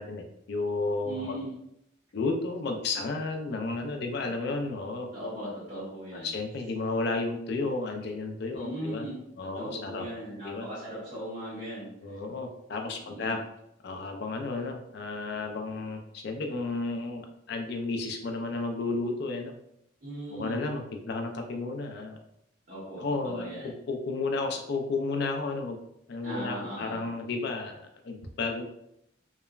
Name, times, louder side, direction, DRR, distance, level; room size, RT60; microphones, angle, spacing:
voice 1, 0.0-1.4 2.1-5.1 6.1-9.1 9.4-10.1 10.4-10.7 12.0-13.4 13.8-19.5 20.3-22.2 23.0-25.8 26.1-28.6, left 3 dB, 55° left, 4 dB, 0.4 m, -32 dB
voice 2, 1.0-1.5 4.2-4.3 5.1-6.3 8.5-9.2 9.5-11.9 13.0-13.3 20.0-20.6 22.7-23.7 26.2-27.0, equal, 50° right, -13 dB, 1.5 m, -38 dB
3.0 x 2.0 x 2.3 m, 0.79 s
head